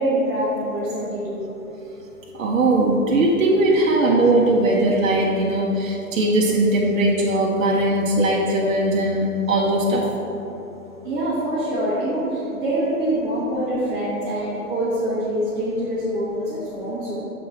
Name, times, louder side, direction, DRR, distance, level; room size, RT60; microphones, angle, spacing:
voice 1, 0.0-1.5 11.0-17.2, right 1 dB, 20° right, -13 dB, 1.3 m, -25 dB
voice 2, 2.4-10.0, right 1 dB, 60° right, -3 dB, 0.8 m, -19 dB
6.5 x 3.8 x 4.3 m, 3.0 s
hypercardioid pair, 160°, 45 cm